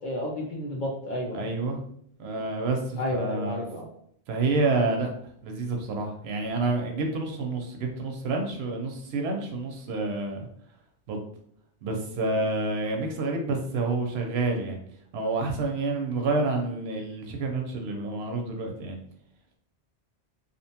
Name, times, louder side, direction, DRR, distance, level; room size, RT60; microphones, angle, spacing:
voice 1, 0.0-1.5 2.3-2.5 3.0-3.9, left 1 dB, 55° left, -1 dB, 0.6 m, -31 dB
voice 2, 1.3-1.8 2.2-3.6 4.3-5.1 5.4-10.4 11.1-11.2 11.8-14.8 15.1-19.0, right 3 dB, 70° right, 2 dB, 0.8 m, -28 dB
2.7 x 2.1 x 2.7 m, 0.67 s
omnidirectional pair, 1.2 m